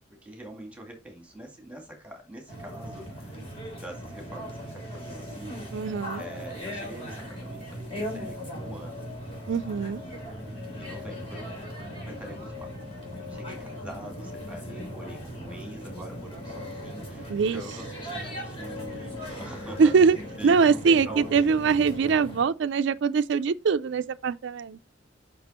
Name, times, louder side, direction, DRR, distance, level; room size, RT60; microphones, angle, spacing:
voice 1, 0.1-3.4 3.7-5.6 6.1-9.1 10.7-11.5 12.0-12.7 13.3-19.9 20.4-21.5, right 1 dB, 5° right, 2.1 m, -44 dB
sound 1, 2.5-22.4, equal, 30° left, 3.2 m, -38 dB
voice 2, 5.7-6.2 9.5-10.0 17.3-17.6 19.8-20.2 20.4-24.8, right 5 dB, 65° right, 0.4 m, -22 dB
6.1 x 5.7 x 4.2 m
head